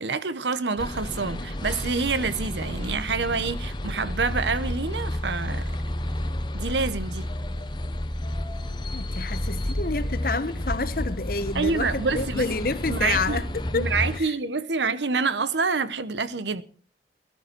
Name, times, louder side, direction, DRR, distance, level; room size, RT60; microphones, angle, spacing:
voice 1, 0.0-5.7 6.5-7.3 11.5-12.5 12.9-13.4 13.7-16.6, right 4 dB, 90° right, 1.0 m, -27 dB
sound 1, 0.8-14.2, left 1 dB, 25° left, 1.0 m, -31 dB
voice 2, 8.9-13.5 13.7-13.9 14.1-14.3, left 3 dB, 55° left, 1.1 m, -28 dB
17.5 x 12.5 x 4.5 m
head